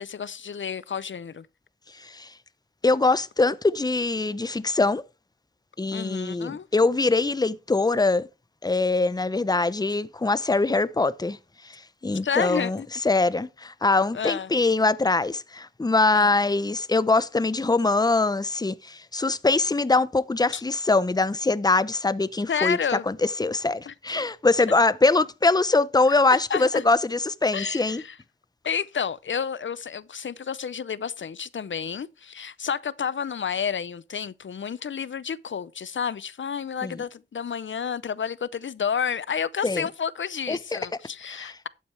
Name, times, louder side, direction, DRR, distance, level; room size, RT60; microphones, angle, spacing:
voice 1, 0.0-1.5 5.9-6.7 12.2-12.9 14.1-14.5 16.1-16.4 20.5-20.6 22.5-23.1 23.9-24.0 26.3-26.8 27.5-28.2 28.6-41.7, left 7 dB, 70° left, 0.6 m, -30 dB
voice 2, 2.0-2.3 2.8-5.0 5.8-8.3 8.6-11.4 11.6-22.8 23.1-28.0 36.8-37.0 39.6-39.9 40.5-40.8 41.3-41.5, left 3 dB, 20° left, 0.6 m, -23 dB
12.0 x 8.5 x 3.3 m
wide cardioid pair, 70°, 20 cm